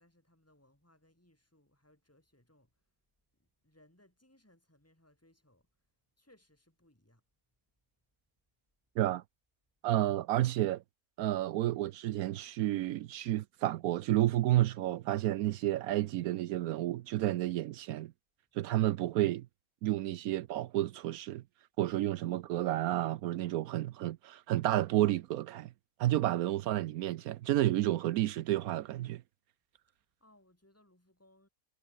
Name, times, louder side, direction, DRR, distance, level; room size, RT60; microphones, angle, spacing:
voice 1, 0.0-2.7 3.4-5.7 6.2-7.2 30.2-31.5, left 1 dB, 10° left, 4.5 m, -66 dB
voice 2, 9.8-10.8 11.2-18.1 18.5-19.5 19.8-21.4 21.8-25.7 26.0-29.2, right 14 dB, 80° right, 1.0 m, -31 dB
omnidirectional pair, 1.6 m